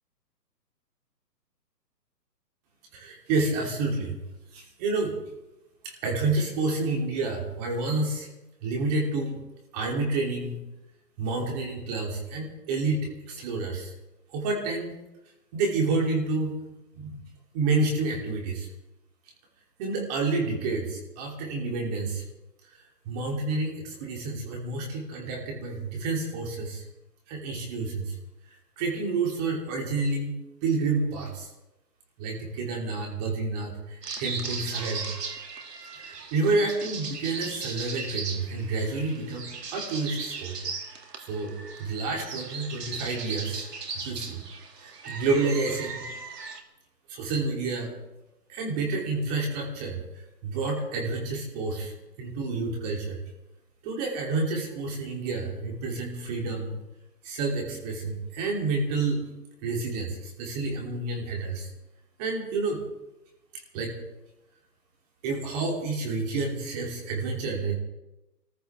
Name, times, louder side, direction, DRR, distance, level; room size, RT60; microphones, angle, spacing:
voice 1, 2.9-4.2 4.5-5.4 5.8-8.3 8.6-9.4 9.7-10.6 11.2-13.9 14.3-15.0 15.5-16.6 17.0-17.2 17.5-18.7 19.8-22.2 22.7-26.8 27.3-28.2 28.5-30.3 30.6-31.5 32.2-35.1 36.0-40.6 41.2-43.6 44.0-44.4 44.8-46.0 47.1-47.9 48.5-53.2 53.8-56.7 57.2-59.2 59.6-61.7 62.2-62.8 63.7-64.0 65.2-67.8, right 3 dB, 25° right, 0 dB, 2.9 m, -29 dB
sound 1, 34.0-46.6, right 4 dB, 70° right, 2.4 m, -37 dB
25.0 x 14.5 x 3.5 m, 0.98 s
hypercardioid pair, 155°, 50 cm